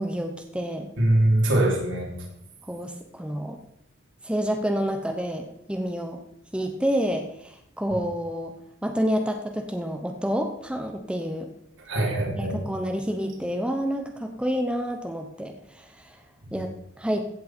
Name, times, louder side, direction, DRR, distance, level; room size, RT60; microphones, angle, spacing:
voice 1, 0.0-0.9 2.7-3.6 4.2-6.2 6.5-8.5 8.8-11.5 12.4-16.2 16.5-16.7 17.0-17.2, equal, 5° right, 4 dB, 0.8 m, -28 dB
voice 2, 1.0-2.1 11.9-12.6 16.4-16.5, right 1 dB, 75° right, -1 dB, 3.5 m, -22 dB
15.5 x 8.4 x 4.4 m, 0.77 s
head